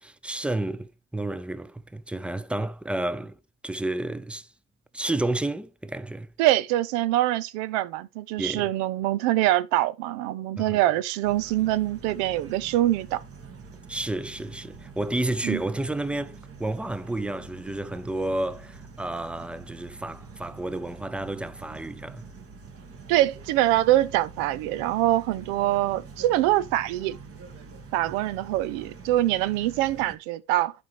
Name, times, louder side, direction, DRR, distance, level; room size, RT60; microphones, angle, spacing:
voice 1, 0.0-3.4 3.6-4.5 4.9-6.3 8.4-8.7 10.6-10.8 13.9-22.3, right 2 dB, 5° right, 0.5 m, -31 dB
voice 2, 6.4-13.2 15.4-15.6 23.1-27.2 27.9-30.7, right 15 dB, 90° right, 0.6 m, -24 dB
sound 1, 11.2-30.1, right 4 dB, 45° right, 1.6 m, -45 dB
11.0 x 4.3 x 3.0 m
supercardioid pair, 95°, 33 cm